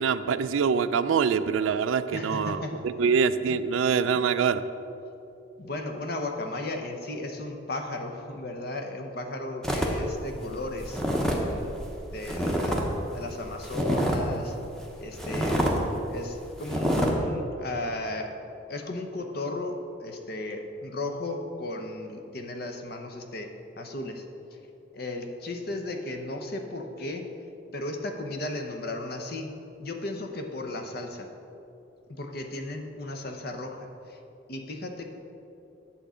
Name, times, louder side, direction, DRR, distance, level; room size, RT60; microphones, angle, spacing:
voice 1, 0.0-4.6, right 6 dB, 80° right, 13 dB, 0.4 m, -25 dB
voice 2, 2.1-2.7 5.6-11.7 12.1-14.6 15.0-15.7 16.1-18.3 18.7-23.5 23.8-24.2 24.5-24.6 24.9-27.3 27.7-31.3 32.1-34.2 34.5-35.1, left 2 dB, 50° left, 4 dB, 0.8 m, -35 dB
sound 1, 9.6-12.9 13.1-14.3 14.8-14.9 15.2-15.8 16.2-16.3 16.6-17.1, equal, 5° left, 0.8 m, -27 dB
8.8 x 6.9 x 5.0 m, 2.8 s
head